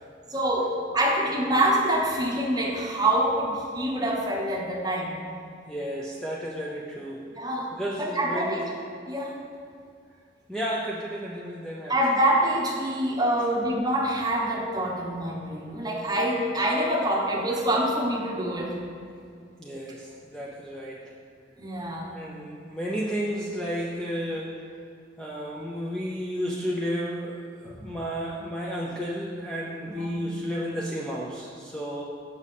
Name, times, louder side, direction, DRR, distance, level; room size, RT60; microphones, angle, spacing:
voice 1, 0.3-5.2 7.4-7.7 8.0-8.7 9.1-9.4 11.9-18.7 21.6-22.2 27.8-27.9 29.9-30.2, right 1 dB, 20° right, -2 dB, 0.9 m, -26 dB
voice 2, 5.7-7.2 7.7-8.7 10.5-11.9 19.6-21.1 22.1-24.5 25.2-32.0, equal, 5° left, -5 dB, 0.5 m, -32 dB
7.1 x 6.1 x 4.1 m, 2.3 s
head